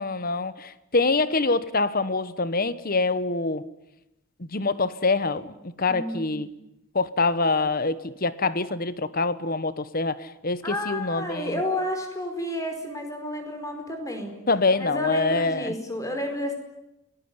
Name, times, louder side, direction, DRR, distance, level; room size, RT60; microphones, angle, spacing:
voice 1, 0.0-3.6 4.5-6.5 6.9-11.5 14.5-15.7, left 3 dB, 45° left, 1.2 m, -25 dB
voice 2, 5.9-6.4 10.6-14.3 14.8-16.5, left 1 dB, 15° left, 5.0 m, -31 dB
29.5 x 19.5 x 9.7 m
head